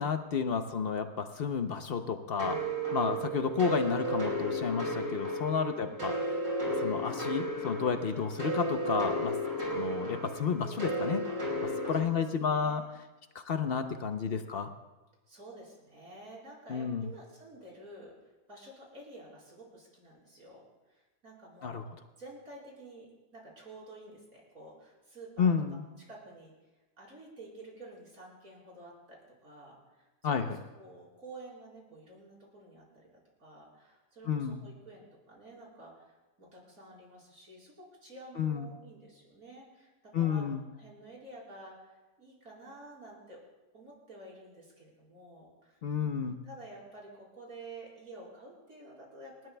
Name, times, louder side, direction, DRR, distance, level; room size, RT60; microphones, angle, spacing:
voice 1, 0.0-2.6 2.9-6.1 6.7-9.3 9.7-11.2 11.9-12.8 13.3-14.7 16.7-17.1 21.6-21.8 25.4-25.8 30.2-30.5 34.3-34.6 38.4-38.7 40.1-40.6 45.8-46.4, left 6 dB, 60° left, 8 dB, 0.6 m, -31 dB
sound 1, 2.4-12.0, right 1 dB, 80° right, 5.3 m, -33 dB
voice 2, 3.0-3.3 5.7-6.0 8.1-8.2 9.6-10.0 11.9-12.8 15.3-20.6 20.9-21.8 22.2-26.5 27.0-33.1 33.4-43.4 43.7-49.6, right 2 dB, 55° right, -4 dB, 4.8 m, -51 dB
29.5 x 12.5 x 2.2 m, 1.1 s
omnidirectional pair, 1.8 m